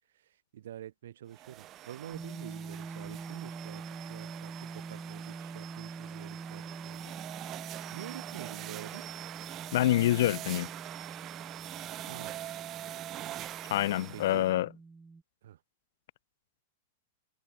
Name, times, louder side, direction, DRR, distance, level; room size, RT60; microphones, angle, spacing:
voice 1, 0.1-7.2 7.9-9.0 12.0-12.4 14.1-14.5 15.4-15.6, right 11 dB, 75° right, 4.7 m, -47 dB
sound 1, 1.3-14.5, right 14 dB, 35° right, 1.7 m, -44 dB
sound 2, 2.1-15.2, right 4 dB, 10° right, 2.7 m, -45 dB
voice 2, 9.7-10.7 13.7-14.7, left 14 dB, 70° left, 0.7 m, -26 dB
hypercardioid pair, 125°, 0 cm